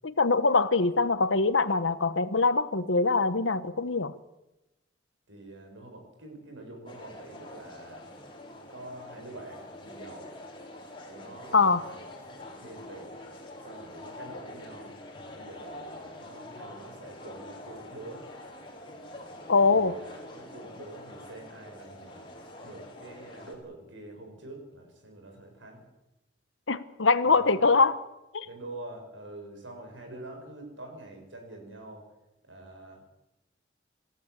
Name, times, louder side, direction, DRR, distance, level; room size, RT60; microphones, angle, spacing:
voice 1, 0.0-4.1 11.5-11.8 19.5-19.9 26.7-28.0 28.3-28.5, left 4 dB, 90° left, 12 dB, 1.2 m, -23 dB
voice 2, 5.3-8.1 8.7-10.3 11.1-12.0 12.6-13.1 13.6-14.9 15.3-18.3 19.6-22.3 22.6-25.8 27.2-27.6 28.4-32.1 32.5-33.0, right 2 dB, 85° right, 4 dB, 7.3 m, -46 dB
sound 1, 6.9-23.5, left 1 dB, 25° left, 4.8 m, -45 dB
28.5 x 15.0 x 8.4 m, 0.95 s
head